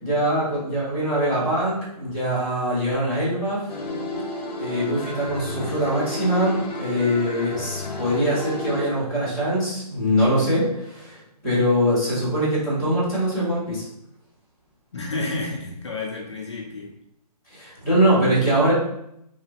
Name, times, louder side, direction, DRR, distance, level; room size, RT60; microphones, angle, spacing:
voice 1, 0.0-3.7 4.6-13.9 17.5-18.7, equal, 5° right, -15 dB, 0.7 m, -23 dB
sound 1, 3.7-8.9, left 1 dB, 75° left, 0.8 m, -31 dB
voice 2, 14.9-16.9 17.6-17.7, left 2 dB, 45° left, -2 dB, 0.5 m, -30 dB
3.2 x 2.1 x 2.7 m, 0.78 s
hypercardioid pair, 175°, 21 cm